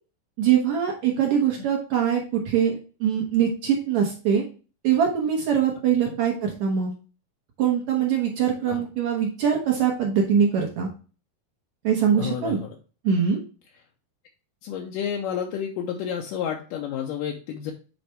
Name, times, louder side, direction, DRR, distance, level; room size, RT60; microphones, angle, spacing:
voice 1, 0.4-4.4 4.8-6.9 7.6-10.9 11.8-12.6 13.0-13.4, right 8 dB, 65° right, 0 dB, 2.0 m, -23 dB
voice 2, 12.2-12.8 14.6-17.7, left 8 dB, 75° left, 0 dB, 2.2 m, -30 dB
7.9 x 4.1 x 3.4 m, 0.36 s
omnidirectional pair, 4.2 m